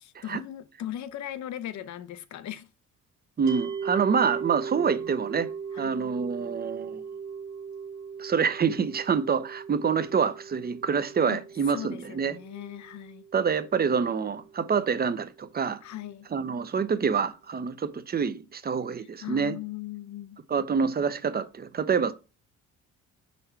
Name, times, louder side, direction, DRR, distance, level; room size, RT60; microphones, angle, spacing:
voice 1, 0.0-2.7 5.7-6.0 11.3-11.4 11.7-13.3 15.8-16.3 19.0-20.4, left 12 dB, 70° left, 0.7 m, -38 dB
voice 2, 3.4-5.5 5.8-7.0 8.2-12.3 13.3-15.8 16.3-19.6 20.5-22.1, right 6 dB, 30° right, 0.7 m, -26 dB
sound 1, 3.5-14.6, right 6 dB, 65° right, 1.0 m, -38 dB
5.6 x 4.2 x 4.3 m
cardioid pair, 90°, 30 cm